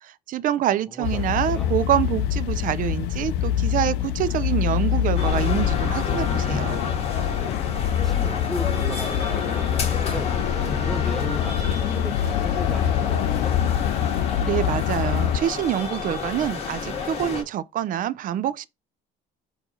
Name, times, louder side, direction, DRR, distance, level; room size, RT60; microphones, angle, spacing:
voice 1, 0.0-6.8 14.2-18.7, right 11 dB, 55° right, 0.4 m, -26 dB
voice 2, 0.9-1.8 8.0-10.4 10.8-13.6, equal, ahead, 0.6 m, -36 dB
sound 1, 1.0-15.4, left 10 dB, 85° left, 0.4 m, -25 dB
sound 2, 5.2-17.4, left 5 dB, 35° left, 1.9 m, -30 dB
4.5 x 2.6 x 4.2 m
cardioid pair, 110°, 17 cm